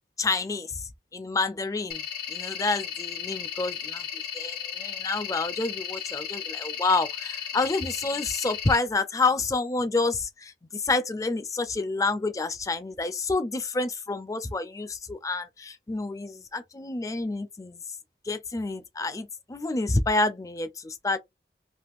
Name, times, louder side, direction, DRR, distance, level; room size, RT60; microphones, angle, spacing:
voice 1, 0.2-0.8 1.1-4.1 4.3-17.8 18.3-21.2, left 3 dB, 20° left, 0.4 m, -28 dB
sound 1, 1.9-8.8, left 8 dB, 55° left, 0.8 m, -35 dB
3.4 x 2.4 x 2.4 m
head